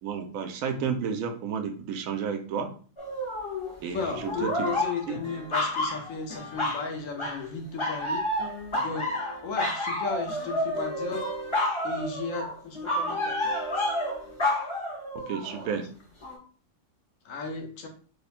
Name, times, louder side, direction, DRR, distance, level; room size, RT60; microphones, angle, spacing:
voice 1, 0.0-2.7 3.8-4.7 5.1-5.2 15.1-15.9, right 6 dB, 80° right, 7 dB, 1.0 m, -31 dB
sound 1, 3.0-3.8 4.1-6.9 7.2-7.5 7.8-15.7 16.2-16.4, left 1 dB, 30° left, 0.7 m, -30 dB
voice 2, 3.9-8.2 8.7-9.1 9.4-11.3 11.8-13.4 17.2-17.9, left 5 dB, 75° left, 3 dB, 1.1 m, -35 dB
3.0 x 2.1 x 4.1 m, 0.41 s
omnidirectional pair, 1.4 m